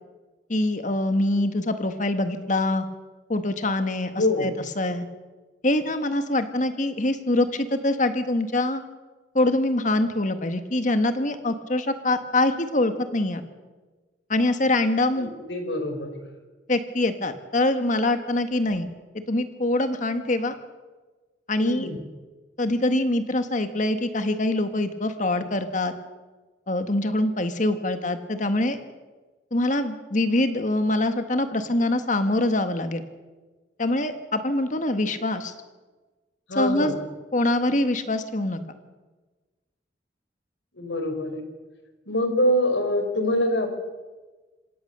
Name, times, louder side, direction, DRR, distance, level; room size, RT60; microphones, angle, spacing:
voice 1, 0.5-2.9 3.3-5.1 5.6-8.8 9.3-13.4 14.3-15.3 16.7-18.9 19.3-20.6 21.5-21.9 22.6-25.9 26.7-28.8 29.5-33.0 33.8-35.5 36.5-36.9 37.3-38.6, left 1 dB, 45° left, 9 dB, 1.6 m, -24 dB
voice 2, 4.1-4.5 15.2-16.1 21.6-22.0 36.5-37.0 40.8-41.4 42.1-43.7, left 1 dB, 75° left, 6 dB, 4.5 m, -24 dB
26.5 x 17.5 x 6.8 m, 1.3 s
head